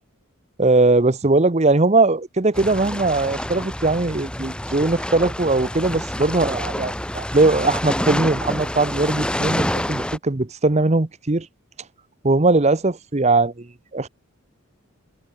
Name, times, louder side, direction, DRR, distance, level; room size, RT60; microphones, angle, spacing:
voice 1, 0.6-11.5 12.2-13.7 13.9-14.1, right 2 dB, 30° right, 0.9 m, -20 dB
sound 1, 2.5-10.2, left 1 dB, 5° left, 1.1 m, -27 dB
head